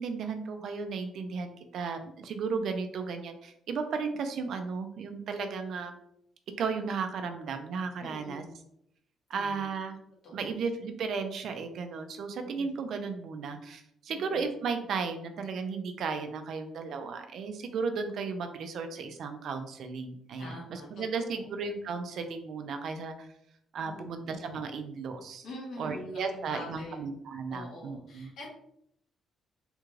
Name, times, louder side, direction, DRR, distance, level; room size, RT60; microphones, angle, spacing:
voice 1, 0.0-5.9 6.6-8.4 9.3-10.0 10.3-23.3 23.7-25.5 25.8-28.3, right 5 dB, 70° right, 6 dB, 0.4 m, -35 dB
voice 2, 8.0-8.5 9.3-9.7 10.2-10.6 12.4-12.7 14.1-14.4 20.4-21.5 23.8-24.2 25.4-27.0 27.5-28.5, left 1 dB, 70° left, -2 dB, 1.3 m, -45 dB
3.4 x 2.4 x 3.1 m, 0.72 s
cardioid pair, 90°, 0 cm